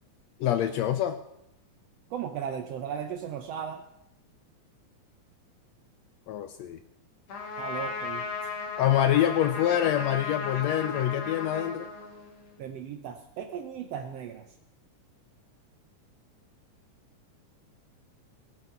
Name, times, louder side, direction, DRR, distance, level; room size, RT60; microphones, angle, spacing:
voice 1, 0.4-1.2 6.3-6.8 8.8-11.9, left 11 dB, 75° left, 10 dB, 1.6 m, -26 dB
voice 2, 2.1-3.8 7.6-8.2 12.6-14.5, right 8 dB, 70° right, 7 dB, 1.5 m, -36 dB
Trumpet, 7.3-12.6, left 4 dB, 55° left, 2.8 m, -36 dB
18.0 x 8.0 x 5.8 m, 0.80 s
omnidirectional pair, 3.6 m